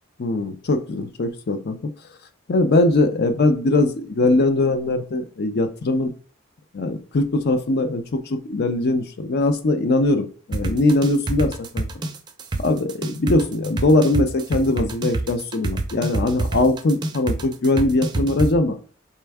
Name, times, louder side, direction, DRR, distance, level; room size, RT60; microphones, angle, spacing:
voice 1, 0.2-1.9 2.5-6.1 6.7-11.8 12.6-18.8, left 2 dB, 55° left, 8 dB, 0.5 m, -21 dB
sound 1, 10.5-18.5, right 2 dB, 20° right, 0.5 m, -25 dB
4.3 x 3.4 x 3.4 m, 0.41 s
head